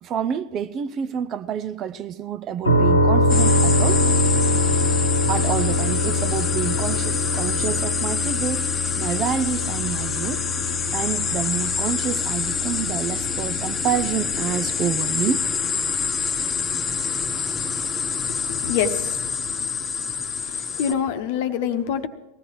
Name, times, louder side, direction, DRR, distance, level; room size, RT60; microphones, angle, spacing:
voice 1, 0.0-4.0 5.3-8.7 9.0-10.4 10.9-15.4, right 8 dB, 30° right, 0.6 m, -28 dB
sound 1, 2.7-16.3, left 1 dB, 85° left, 1.4 m, -24 dB
sound 2, 3.3-20.9, left 5 dB, 20° left, 1.1 m, -26 dB
voice 2, 18.3-20.1 20.4-22.1, left 8 dB, 50° left, 1.1 m, -27 dB
20.5 x 15.5 x 3.1 m
figure-of-eight pair, 90°, 0 cm